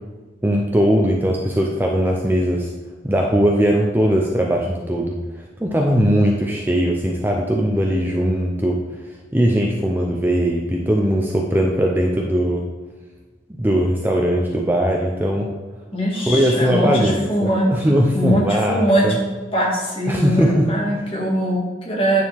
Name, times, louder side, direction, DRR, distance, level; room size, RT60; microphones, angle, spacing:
voice 1, 0.4-2.7 3.0-8.8 9.3-12.6 13.6-15.5 16.3-19.2 20.1-20.8, equal, 10° right, 0 dB, 0.5 m, -19 dB
voice 2, 15.9-17.8 18.1-19.2 19.5-22.2, equal, 30° left, -3 dB, 1.9 m, -21 dB
9.1 x 6.6 x 3.5 m, 1.3 s
head